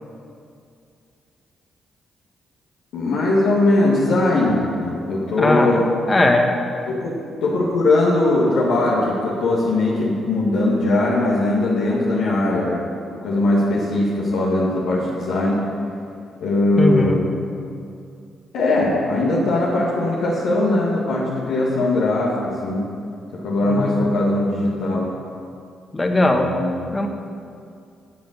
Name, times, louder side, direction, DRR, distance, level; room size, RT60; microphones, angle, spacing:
voice 1, 2.9-5.8 6.9-7.1 7.4-15.6 16.4-17.3 18.5-22.8 23.3-25.0 26.3-26.9, left 2 dB, 80° left, -7 dB, 1.9 m, -20 dB
voice 2, 5.4-6.5 16.8-17.2 23.7-24.0 25.9-26.5 26.9-27.1, left 2 dB, 25° left, 3 dB, 1.6 m, -19 dB
12.0 x 7.6 x 6.7 m, 2.4 s
hypercardioid pair, 50°, 0 cm